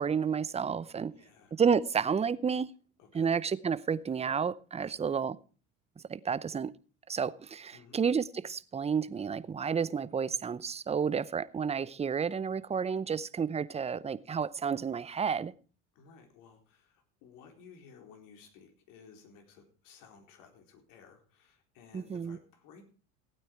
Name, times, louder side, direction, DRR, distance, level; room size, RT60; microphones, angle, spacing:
voice 1, 0.0-1.1 1.6-2.7 3.1-5.4 6.0-6.7 7.1-15.5 21.9-22.4, right 6 dB, 20° right, 0.7 m, -31 dB
voice 2, 1.1-1.5 3.0-3.3 4.8-5.3 7.7-8.0 15.9-22.8, left 6 dB, 65° left, 4.1 m, -57 dB
16.5 x 9.1 x 4.6 m
supercardioid pair, 90°, 35 cm